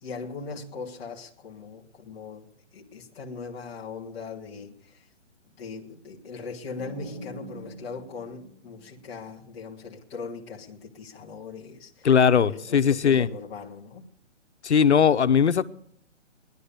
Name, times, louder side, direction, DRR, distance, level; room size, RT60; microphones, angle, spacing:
voice 1, 0.0-2.5 2.7-5.0 5.6-12.1 12.5-14.0, left 4 dB, 5° left, 0.8 m, -39 dB
sound 1, 6.8-9.6, equal, 15° right, 1.9 m, -45 dB
voice 2, 12.0-13.3 14.6-15.7, left 7 dB, 65° left, 1.0 m, -19 dB
18.5 x 11.5 x 6.7 m
hypercardioid pair, 170°, 36 cm